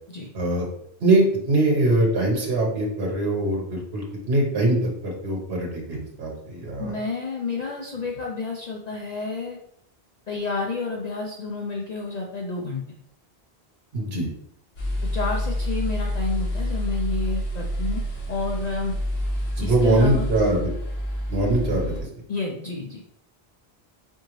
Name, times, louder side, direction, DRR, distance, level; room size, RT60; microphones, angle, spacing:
voice 1, 0.3-0.6 1.0-4.8 5.0-6.9 13.9-14.3 19.6-20.7 21.3-22.1, right 2 dB, 70° right, -1 dB, 1.3 m, -22 dB
voice 2, 6.8-9.6 10.3-12.8 15.1-18.0 18.3-18.9 19.6-20.3 22.3-23.1, left 3 dB, 50° left, 0 dB, 0.6 m, -30 dB
sound 1, 14.8-22.0, equal, 75° left, 1.4 m, -28 dB
4.4 x 3.8 x 3.1 m, 0.74 s
omnidirectional pair, 1.1 m